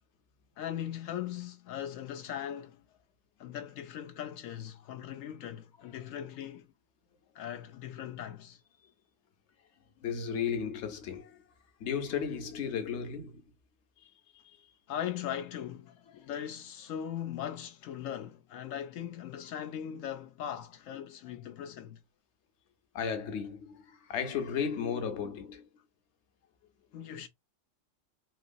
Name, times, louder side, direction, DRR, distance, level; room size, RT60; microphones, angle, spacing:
voice 1, 0.6-2.8 3.4-6.7 7.3-8.6 14.9-22.0 26.9-27.3, left 10 dB, 90° left, 1.0 m, -39 dB
voice 2, 10.0-11.4 11.8-13.4 14.0-14.4 22.9-25.6, left 7 dB, 60° left, 1.1 m, -34 dB
3.2 x 2.9 x 2.6 m
omnidirectional pair, 1.3 m